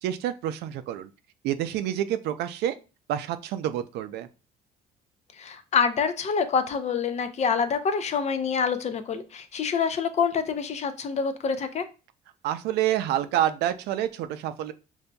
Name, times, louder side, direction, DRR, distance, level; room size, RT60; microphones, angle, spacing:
voice 1, 0.0-1.1 1.4-2.8 3.1-4.3 12.4-14.7, right 11 dB, 80° right, 11 dB, 0.4 m, -28 dB
voice 2, 5.4-11.8, left 6 dB, 40° left, 10 dB, 0.5 m, -26 dB
5.2 x 2.6 x 2.2 m, 0.31 s
cardioid pair, 110°, 17 cm